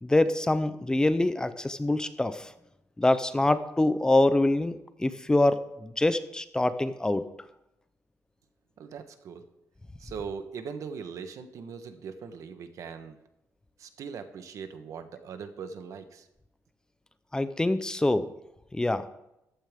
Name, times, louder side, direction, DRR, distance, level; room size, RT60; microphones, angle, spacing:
voice 1, 0.0-2.5 3.0-4.7 5.0-7.3 17.3-18.3 18.7-19.1, left 2 dB, 15° left, 12 dB, 0.7 m, -25 dB
voice 2, 8.8-9.4 10.0-13.2 13.8-16.3, right 6 dB, 70° right, 9 dB, 1.3 m, -40 dB
14.5 x 12.5 x 3.7 m, 0.85 s
cardioid pair, 120°, 6 cm